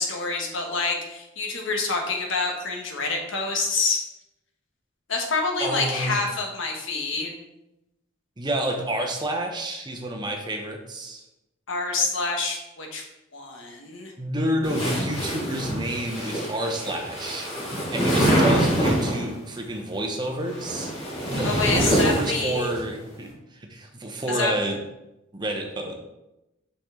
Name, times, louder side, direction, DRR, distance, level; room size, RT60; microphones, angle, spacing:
voice 1, 0.0-4.0 5.1-7.4 11.7-13.0 13.3-14.1 21.4-22.7 24.3-24.5, left 3 dB, 75° left, 1 dB, 1.2 m, -27 dB
voice 2, 5.6-6.2 8.4-11.2 14.2-17.5 17.9-20.9 21.3-24.8 25.3-25.9, right 1 dB, 20° right, 2 dB, 0.8 m, -29 dB
sound 1, 14.6-19.3 20.3-22.8, right 1 dB, 30° left, 2.4 m, -25 dB
5.8 x 5.4 x 3.7 m, 0.93 s
head